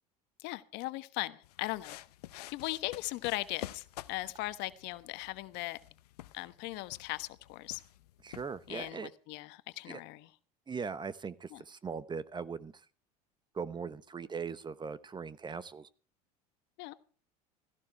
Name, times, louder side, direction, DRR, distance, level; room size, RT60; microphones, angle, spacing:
voice 1, 0.4-2.0 2.3-5.8 6.3-7.8 8.7-10.3 11.5-11.6 16.8-16.9, left 19 dB, 60° left, 13 dB, 1.2 m, -39 dB
sound 1, 1.4-8.9, left 15 dB, 80° left, 0.8 m, -50 dB
voice 2, 8.2-9.1 9.9-10.0 10.7-12.7 13.5-15.9, right 5 dB, 25° right, 17 dB, 1.0 m, -40 dB
16.5 x 15.0 x 4.5 m, 0.42 s
hypercardioid pair, 80°, 20 cm